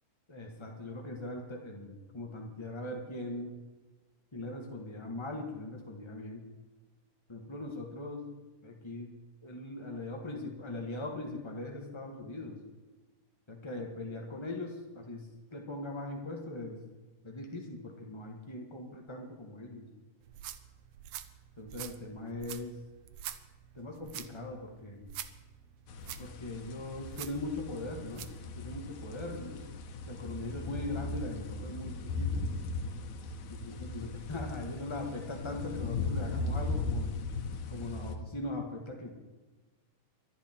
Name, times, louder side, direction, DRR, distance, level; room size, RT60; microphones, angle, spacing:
voice 1, 0.3-3.6 4.3-6.5 7.3-8.2 8.6-9.2 9.4-12.6 13.5-16.8 17.2-19.9 21.6-22.8 23.7-25.1 26.2-28.3 28.6-29.6 30.0-32.4 33.5-37.1 37.7-39.1, left 2 dB, 25° left, 1 dB, 0.6 m, -40 dB
sound 1, 20.2-28.4, right 11 dB, 70° right, 1.6 m, -46 dB
sound 2, 25.9-38.2, left 3 dB, 70° left, 2.5 m, -37 dB
24.5 x 10.5 x 4.5 m, 1.3 s
omnidirectional pair, 3.5 m